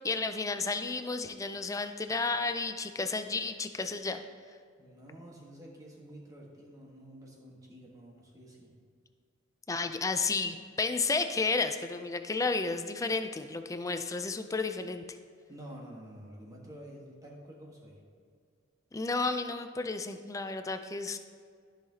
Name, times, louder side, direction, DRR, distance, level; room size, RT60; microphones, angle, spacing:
voice 1, 0.0-4.2 9.7-15.0 18.9-21.2, left 3 dB, 15° left, 8 dB, 0.4 m, -32 dB
voice 2, 4.8-8.7 15.5-18.0, right 1 dB, 20° right, -2 dB, 1.3 m, -49 dB
13.5 x 5.7 x 2.8 m, 2.2 s
head